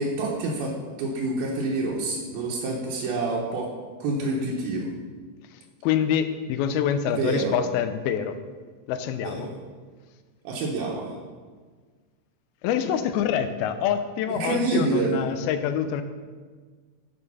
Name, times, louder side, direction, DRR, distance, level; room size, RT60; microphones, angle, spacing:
voice 1, 0.0-3.7 4.0-4.9 7.2-7.6 9.2-9.5 10.4-11.2 14.4-15.2, right 2 dB, 80° right, -3 dB, 2.8 m, -27 dB
voice 2, 5.5-8.4 8.9-9.5 12.6-16.0, left 8 dB, 90° left, 10 dB, 2.5 m, -26 dB
8.2 x 7.0 x 5.5 m, 1.5 s
omnidirectional pair, 4.3 m